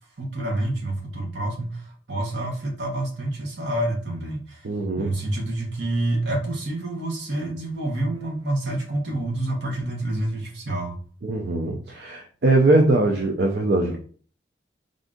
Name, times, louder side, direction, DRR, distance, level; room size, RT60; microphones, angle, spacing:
voice 1, 0.2-4.7 5.0-11.0, right 1 dB, 80° right, 1 dB, 1.1 m, -28 dB
voice 2, 4.6-5.1 11.2-14.0, right 2 dB, 65° right, 2 dB, 0.5 m, -21 dB
3.7 x 2.6 x 3.6 m, 0.43 s
head